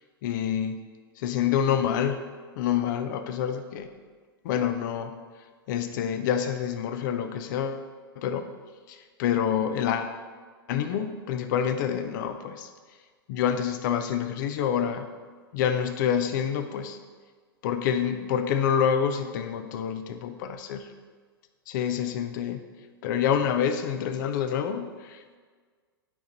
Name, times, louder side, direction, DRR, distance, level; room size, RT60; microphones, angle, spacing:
voice 1, 0.2-0.8 1.2-2.2 2.6-3.9 4.4-5.1 5.7-7.8 8.2-8.5 8.9-10.2 10.7-12.7 13.3-15.1 15.5-17.0 17.6-20.9 21.7-22.6 23.0-25.4, left 8 dB, 50° left, 9 dB, 0.7 m, -27 dB
11.5 x 5.1 x 4.0 m, 1.5 s
hypercardioid pair, 105°, 13 cm